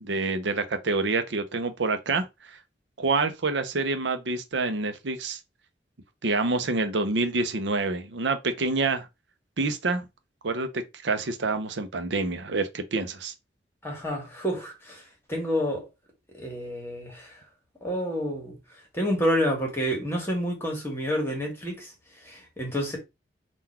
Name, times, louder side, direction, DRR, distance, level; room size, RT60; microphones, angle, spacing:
voice 1, 0.0-2.3 3.0-5.4 6.2-9.1 9.6-10.0 10.4-13.3, right 3 dB, 85° right, 0.7 m, -27 dB
voice 2, 13.8-15.0 15.3-15.8 16.3-17.3 17.8-18.5 18.9-21.9 22.2-23.0, equal, 15° left, 1.5 m, -29 dB
3.9 x 2.5 x 4.3 m
head